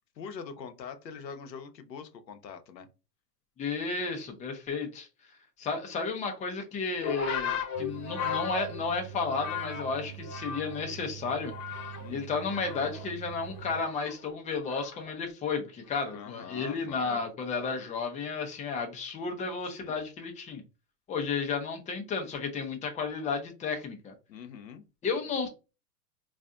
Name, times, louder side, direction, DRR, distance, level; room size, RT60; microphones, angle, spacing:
voice 1, 0.2-2.9 12.0-12.3 16.1-17.2 19.8-20.0 24.3-24.8, left 6 dB, 90° left, 0.8 m, -43 dB
voice 2, 3.6-5.1 5.6-11.5 11.8-20.6 21.1-24.1 25.0-25.5, left 5 dB, 15° left, 0.6 m, -33 dB
sound 1, 7.0-10.9 11.2-12.1 12.4-15.1 16.0-16.3, left 6 dB, 35° left, 1.0 m, -37 dB
power station, 7.7-13.8, right 15 dB, 75° right, 0.6 m, -45 dB
4.1 x 2.6 x 2.4 m
hypercardioid pair, 105°, 49 cm